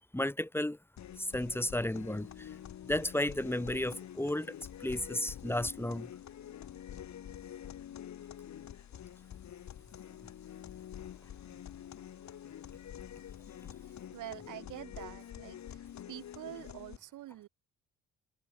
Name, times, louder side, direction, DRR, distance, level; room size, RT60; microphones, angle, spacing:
voice 1, 0.1-0.8 1.2-2.5 2.9-4.5 4.8-6.1, left 1 dB, 5° left, 4.9 m, -33 dB
sound 1, 1.0-17.0, left 10 dB, 65° left, 6.8 m, -47 dB
voice 2, 13.9-15.8 16.1-17.5, right 14 dB, 85° right, 5.3 m, -46 dB
cardioid pair, 90°, 30 cm